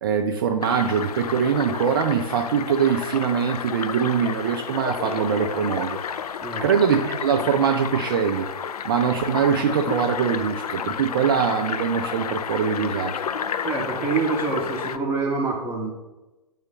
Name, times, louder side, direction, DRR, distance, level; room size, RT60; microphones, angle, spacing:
voice 1, 0.0-6.0 6.6-8.5 8.8-13.2, right 7 dB, 35° right, 5 dB, 0.4 m, -23 dB
sound 1, 0.6-15.0, left 7 dB, 65° left, 0.4 m, -31 dB
voice 2, 13.6-15.9, right 4 dB, 10° right, -1 dB, 0.7 m, -26 dB
8.5 x 3.2 x 4.1 m, 1.1 s
figure-of-eight pair, 120°, 21 cm